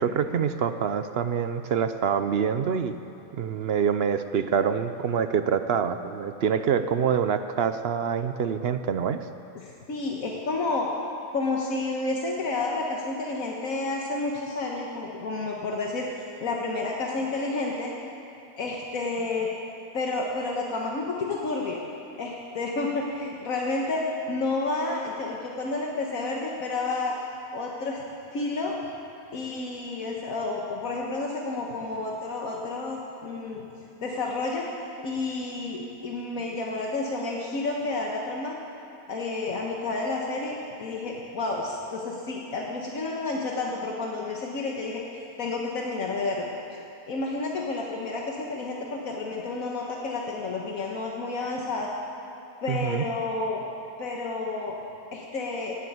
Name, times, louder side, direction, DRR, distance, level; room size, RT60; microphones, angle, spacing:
voice 1, 0.0-2.9 3.3-9.2 52.7-53.0, right 7 dB, 55° right, 10 dB, 0.7 m, -26 dB
voice 2, 9.5-10.9 11.3-17.9 18.6-19.5 19.9-21.8 22.2-27.2 27.5-28.0 28.3-28.8 29.3-33.6 34.0-34.7 35.0-38.6 39.1-45.0 45.4-46.5 47.1-51.9 52.6-53.6 54.0-54.7 55.1-55.8, left 3 dB, 75° left, -1 dB, 1.7 m, -30 dB
17.5 x 8.5 x 9.4 m, 2.8 s
omnidirectional pair, 1.5 m